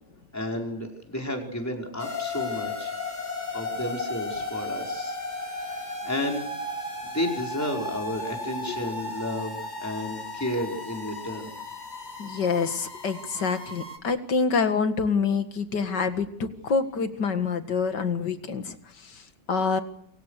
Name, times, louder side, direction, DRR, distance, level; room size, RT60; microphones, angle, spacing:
voice 1, 0.3-2.9 3.5-5.8 6.0-6.5 7.0-11.5, left 1 dB, 10° left, 1 dB, 5.1 m, -32 dB
sound 1, 2.0-14.0, left 2 dB, 25° left, 3.6 m, -35 dB
voice 2, 12.2-18.8 19.0-19.1 19.5-19.8, left 5 dB, 75° left, 9 dB, 2.5 m, -26 dB
27.5 x 24.5 x 6.7 m, 0.72 s
omnidirectional pair, 1.9 m